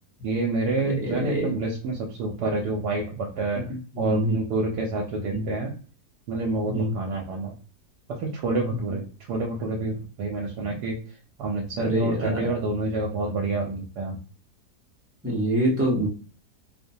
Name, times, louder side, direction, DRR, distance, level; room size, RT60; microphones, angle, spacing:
voice 1, 0.2-5.7 6.3-7.6 8.1-11.0 11.4-14.2, right 3 dB, 85° right, 0 dB, 1.2 m, -28 dB
voice 2, 0.8-1.5 4.0-4.3 5.3-5.5 6.7-6.9 11.8-12.4 15.2-16.1, right 1 dB, 20° right, -4 dB, 0.4 m, -26 dB
2.8 x 2.1 x 2.6 m, 0.38 s
omnidirectional pair, 1.7 m